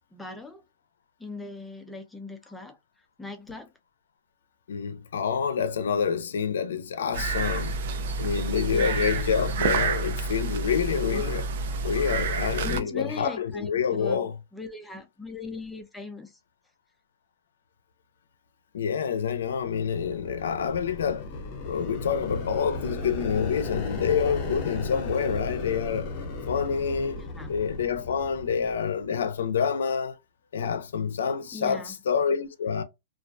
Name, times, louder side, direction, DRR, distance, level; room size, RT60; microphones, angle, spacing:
voice 1, 0.1-0.6 1.2-2.8 3.2-3.7 8.7-9.4 11.1-11.2 12.6-16.4 27.1-27.5 31.5-32.0, left 3 dB, 5° left, 0.4 m, -39 dB
voice 2, 4.7-7.8 8.2-11.5 11.8-14.3 18.7-21.3 21.6-26.1 26.5-30.1 30.5-32.8, left 7 dB, 90° left, 0.4 m, -27 dB
sound 1, 7.1-12.8, right 4 dB, 60° right, 0.5 m, -29 dB
sound 2, 19.5-29.1, left 3 dB, 35° left, 0.8 m, -36 dB
2.3 x 2.1 x 2.5 m
hypercardioid pair, 160°, 0 cm